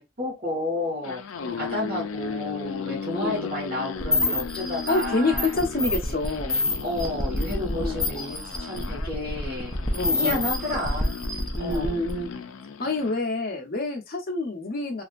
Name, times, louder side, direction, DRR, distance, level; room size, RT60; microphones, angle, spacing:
voice 1, 0.0-1.2 1.6-5.5 6.0-6.1 6.8-9.7 10.1-11.2 11.6-12.0, left 1 dB, 45° right, 1.6 m, -31 dB
sound 1, 0.9-13.2, left 5 dB, 85° left, 0.4 m, -36 dB
voice 2, 3.1-3.4 4.9-6.6 7.7-8.0 9.9-10.4 11.6-12.3 12.8-15.0, left 2 dB, 45° left, 0.8 m, -27 dB
sound 2, 4.0-12.2, left 2 dB, 5° left, 0.6 m, -28 dB
3.1 x 2.7 x 2.5 m
head